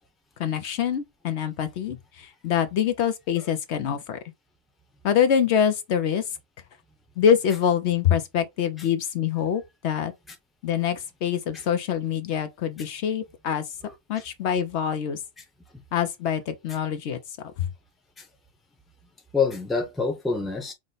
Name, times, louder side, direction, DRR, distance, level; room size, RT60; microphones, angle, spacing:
voice 1, 0.4-4.2 5.0-6.2 7.2-10.1 10.6-13.6 14.1-15.2 15.9-17.2 17.6-17.7, left 8 dB, 70° left, 0.9 m, -25 dB
voice 2, 19.3-20.7, left 5 dB, ahead, 0.7 m, -27 dB
4.9 x 2.1 x 3.8 m
omnidirectional pair, 1.2 m